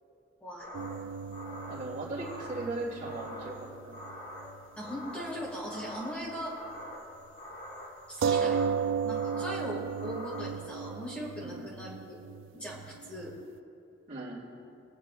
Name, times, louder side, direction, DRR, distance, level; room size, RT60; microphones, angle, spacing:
sound 1, 0.6-10.9, left 1 dB, 40° left, 1.9 m, -46 dB
sound 2, 0.7-4.6 4.9-5.0 8.2-13.4, right 6 dB, 80° right, 0.3 m, -35 dB
voice 1, 1.6-3.6 3.8-4.0 11.4-11.7 14.1-14.4, right 2 dB, 45° right, -4 dB, 2.8 m, -38 dB
voice 2, 4.8-6.6 8.1-8.7 9.0-12.2 12.5-13.3, equal, 5° left, -5 dB, 2.0 m, -39 dB
25.5 x 8.9 x 2.5 m, 2.7 s
head